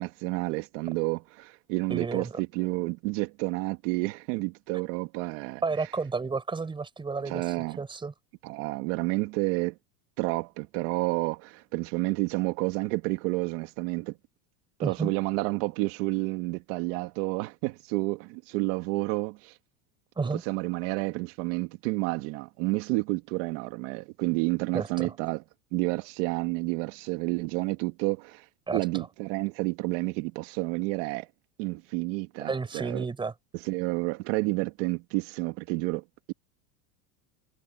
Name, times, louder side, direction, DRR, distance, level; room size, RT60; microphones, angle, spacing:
voice 1, 0.0-5.6 7.2-7.8 8.4-9.8 10.2-14.1 14.8-19.5 20.5-25.4 25.7-28.4 28.7-31.3 31.6-33.0 33.6-36.3, right 23 dB, 55° right, 2.1 m, -30 dB
voice 2, 1.9-2.3 5.6-8.1 14.8-15.1 20.2-20.4 24.7-25.1 28.7-29.1 32.4-33.3, right 4 dB, 10° right, 5.5 m, -32 dB
supercardioid pair, 165°, 44 cm